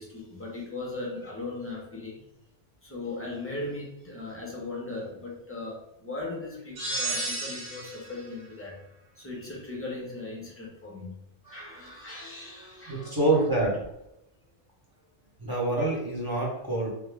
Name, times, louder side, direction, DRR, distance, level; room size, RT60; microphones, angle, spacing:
voice 1, 0.0-2.2 2.8-8.8 9.2-13.2, left 2 dB, 10° left, -2 dB, 0.8 m, -38 dB
sound 1, 6.8-8.1, right 2 dB, 55° right, 1.5 m, -32 dB
voice 2, 12.9-13.8 15.4-16.9, right 2 dB, 20° right, -4 dB, 1.1 m, -26 dB
3.2 x 2.7 x 3.3 m, 0.82 s
omnidirectional pair, 1.2 m